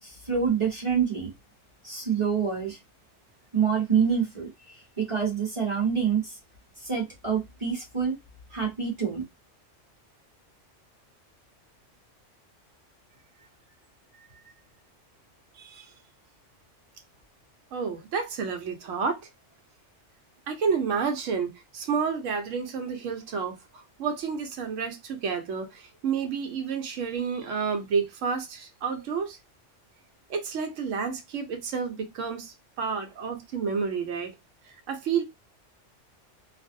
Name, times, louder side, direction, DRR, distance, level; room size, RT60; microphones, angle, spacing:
voice 1, 0.0-1.3 1.8-2.8 3.5-4.5 5.0-6.4 6.8-8.1 8.5-9.2, right 7 dB, 25° right, 1.0 m, -26 dB
voice 2, 15.5-15.9 17.7-19.3 20.5-21.5 21.7-29.4 30.3-34.3 34.9-35.2, right 6 dB, 90° right, 1.0 m, -30 dB
2.5 x 2.0 x 2.5 m
omnidirectional pair, 1.3 m